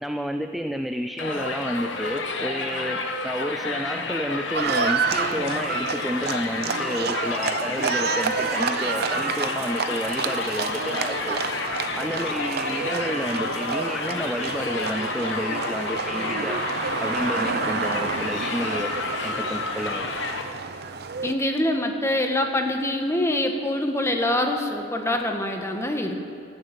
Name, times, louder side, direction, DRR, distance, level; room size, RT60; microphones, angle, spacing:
voice 1, 0.0-11.4 12.0-16.6 17.0-18.9 19.2-20.1, equal, ahead, 7 dB, 0.4 m, -30 dB
Crowd, 1.2-20.4, left 3 dB, 65° left, 1.2 m, -30 dB
Livestock farm animals working animals, 4.5-21.3, right 5 dB, 55° right, 0.7 m, -29 dB
voice 2, 21.2-26.2, left 1 dB, 15° left, 4 dB, 1.3 m, -25 dB
14.5 x 9.4 x 9.1 m, 2.6 s
head